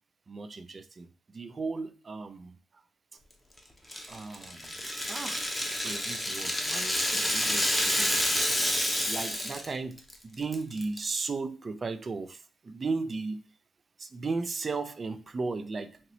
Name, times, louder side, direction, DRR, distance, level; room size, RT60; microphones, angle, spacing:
voice 1, 0.3-2.6 4.1-4.7 5.1-5.4 5.8-8.3 9.1-10.0 10.2-13.4 14.0-16.0, right 4 dB, 35° right, 0.3 m, -35 dB
Rattle (instrument), 3.9-9.7 10.0-10.1 10.5-11.0, left 1 dB, 5° left, 0.6 m, -29 dB
2.9 x 2.9 x 2.6 m
cardioid pair, 90°, 0 cm